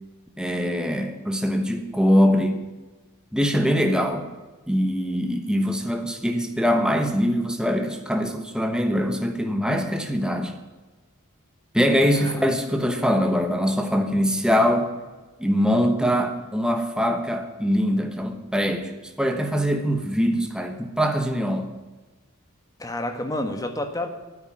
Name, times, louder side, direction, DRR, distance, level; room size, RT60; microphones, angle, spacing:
voice 1, 0.4-2.6 3.3-4.3 4.7-10.5 11.7-14.9 15.4-18.9 19.2-21.7, equal, 5° right, 5 dB, 1.1 m, -23 dB
voice 2, 22.8-24.1, left 1 dB, 15° left, 7 dB, 1.3 m, -29 dB
9.4 x 9.1 x 9.6 m, 1.2 s
head